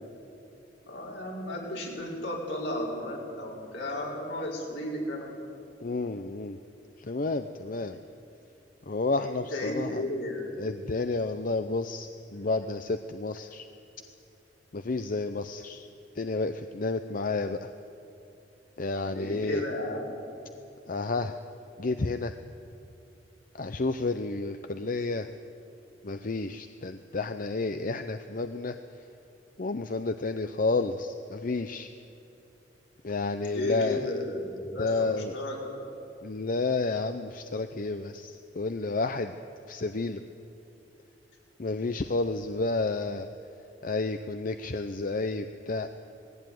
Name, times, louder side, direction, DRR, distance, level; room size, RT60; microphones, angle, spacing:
voice 1, 0.9-5.3 9.2-10.5 19.0-20.2 33.4-35.8, left 1 dB, 75° left, -3 dB, 5.3 m, -34 dB
voice 2, 5.8-6.6 7.0-8.0 8.9-10.0 10.6-13.7 14.7-15.9 16.1-17.7 18.8-19.6 20.9-21.4 21.8-22.4 23.6-25.3 26.0-28.8 29.6-31.9 33.0-34.1 34.8-35.3 36.2-39.3 39.7-40.2 41.6-43.3 43.8-45.9, left 3 dB, 50° left, 9 dB, 0.6 m, -31 dB
19.5 x 16.0 x 9.4 m, 2.9 s
head